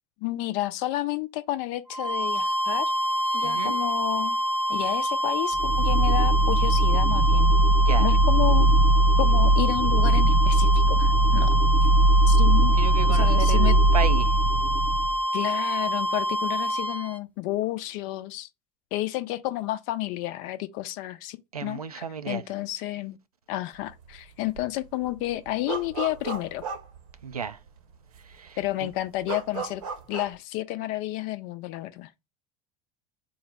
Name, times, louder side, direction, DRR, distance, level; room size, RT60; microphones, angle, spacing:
voice 1, 0.2-2.9 3.3-4.4 4.7-7.5 8.0-8.7 9.2-11.6 12.3-12.7 13.1-13.7 15.3-18.5 18.9-23.2 23.5-26.6 28.6-29.8 30.1-32.1, left 16 dB, 50° left, 0.5 m, -31 dB
sound 1, 1.9-17.2, equal, 10° left, 0.7 m, -27 dB
voice 2, 3.4-3.8 7.9-8.1 12.8-14.4 21.5-22.4 27.2-27.6 28.2-28.9, right 7 dB, 85° right, 0.4 m, -33 dB
sound 2, 5.5-15.2, right 1 dB, 20° right, 0.4 m, -20 dB
sound 3, 23.8-24.2 24.5-27.7 28.1-28.2 28.5-30.4, right 6 dB, 65° right, 0.9 m, -36 dB
3.9 x 2.0 x 4.2 m
figure-of-eight pair, 75°, 19 cm